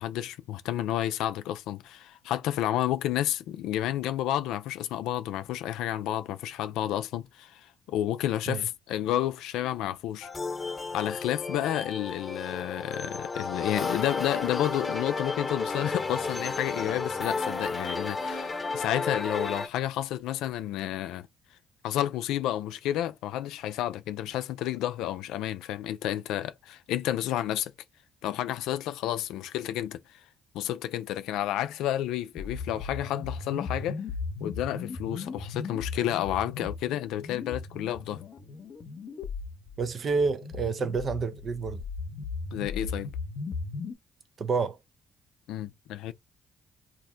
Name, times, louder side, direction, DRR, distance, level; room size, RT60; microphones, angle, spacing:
voice 1, 0.0-10.3 10.9-21.3 21.8-27.7 28.2-30.0 30.5-34.0 34.4-38.2 42.5-43.1 45.5-46.1, left 12 dB, 80° left, 0.3 m, -31 dB
sound 1, 10.2-19.7, left 4 dB, 30° left, 0.9 m, -33 dB
sound 2, 32.3-43.9, left 4 dB, 60° left, 0.7 m, -37 dB
voice 2, 39.8-41.8 44.4-44.8, right 4 dB, 50° right, 0.5 m, -29 dB
2.5 x 2.1 x 3.8 m
supercardioid pair, 60°, 0 cm